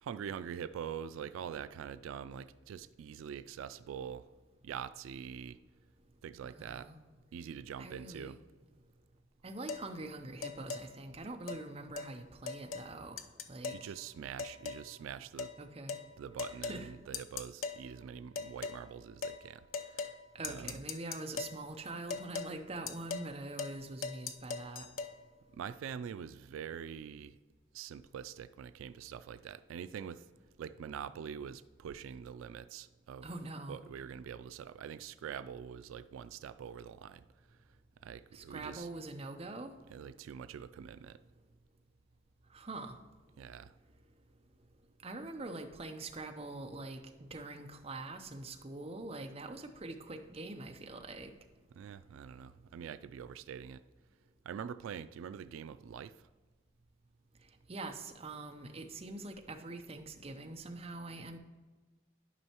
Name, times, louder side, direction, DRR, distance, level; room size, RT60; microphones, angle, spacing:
voice 1, 0.0-4.3 4.6-5.6 6.2-6.9 7.3-8.4 13.7-15.5 16.2-20.1 20.4-20.8 25.5-27.4 27.7-30.3 30.6-33.3 33.7-37.6 38.0-38.9 39.9-41.2 43.4-43.8 51.8-53.8 54.4-56.3, right 8 dB, 90° right, 13 dB, 0.3 m, -44 dB
voice 2, 6.5-7.0 7.8-8.4 9.4-13.2 13.5-13.9 15.6-15.9 16.5-16.9 20.3-24.8 33.2-33.8 38.3-39.7 42.5-43.0 45.0-47.0 47.3-51.3 57.7-61.4, right 2 dB, 30° right, 4 dB, 0.6 m, -44 dB
sound 1, 9.7-9.9 10.4-10.9 11.5-11.6 12.0-12.1 12.5-12.9 13.2-13.9 14.4-14.9 15.4-15.6 15.9-16.1 16.4-16.8 17.1-17.8 18.4-18.8 19.2-19.4 19.7-20.2 20.4-21.6 22.1-22.5 22.9-23.3 23.6-23.8 24.0-25.1, left 5 dB, 85° left, 0.6 m, -39 dB
11.0 x 5.4 x 2.9 m, 1.3 s
head